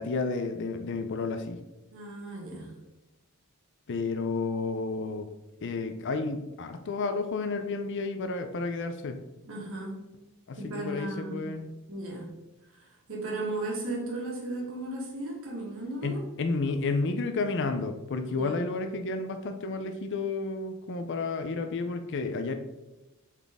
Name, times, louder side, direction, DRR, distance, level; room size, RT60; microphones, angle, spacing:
voice 1, 0.0-1.6 3.9-5.3 5.6-9.2 10.5-11.7 16.0-22.5, left 3 dB, 55° left, 7 dB, 0.5 m, -31 dB
voice 2, 1.9-2.7 9.4-10.0 10.6-11.5 11.9-12.3 12.7-16.2 18.2-18.6, right 2 dB, 65° right, -3 dB, 1.7 m, -36 dB
7.2 x 4.1 x 3.6 m, 1.0 s
head